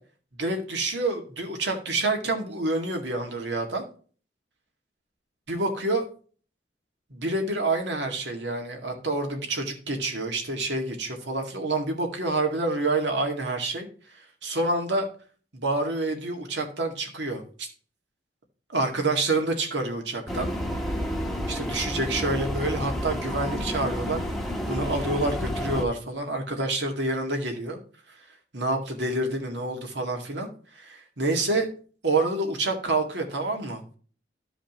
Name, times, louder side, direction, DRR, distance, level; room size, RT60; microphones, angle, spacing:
voice 1, 0.4-3.8 5.5-6.1 7.1-13.9 14.4-15.1 15.5-17.7 18.7-20.5 21.5-24.2 24.7-27.8 28.5-31.7 32.0-33.8, right 2 dB, 75° right, 3 dB, 2.0 m, -28 dB
sound 1, 20.3-25.8, equal, ahead, 1.0 m, -30 dB
14.0 x 5.0 x 3.0 m, 0.42 s
head